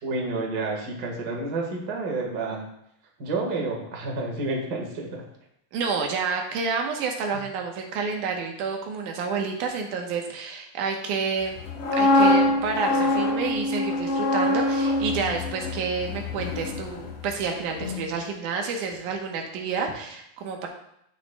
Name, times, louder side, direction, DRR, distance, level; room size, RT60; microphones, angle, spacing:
voice 1, 0.0-2.7 3.2-5.2 7.3-7.4, right 3 dB, 45° right, 0 dB, 1.4 m, -30 dB
voice 2, 5.7-11.6 11.9-20.7, right 5 dB, 70° right, 2 dB, 2.4 m, -29 dB
sound 1, 11.6-17.5 17.8-18.0, left 1 dB, 70° left, 1.3 m, -24 dB
13.0 x 6.4 x 2.3 m, 0.76 s
omnidirectional pair, 3.9 m